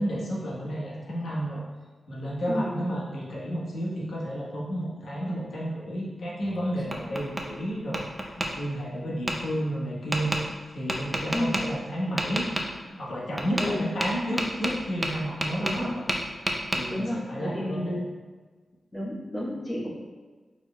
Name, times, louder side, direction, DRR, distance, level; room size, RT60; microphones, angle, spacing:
voice 1, 0.0-1.6 2.1-10.3 10.7-12.5 12.9-16.0 16.7-18.0, equal, 75° left, -5 dB, 1.1 m, -31 dB
Tap, 6.4-7.5 7.9-8.5 9.3-9.4 10.1-10.4 10.9-11.6 12.2-12.7 13.4-13.7 14.0-15.8 16.1-16.8, right 1 dB, 20° right, 0.5 m, -29 dB
voice 2, 15.6-15.9 16.9-18.0 18.9-19.9, left 1 dB, 25° left, -9 dB, 1.2 m, -31 dB
4.7 x 4.2 x 2.2 m, 1.3 s
cardioid pair, 80°, 0 cm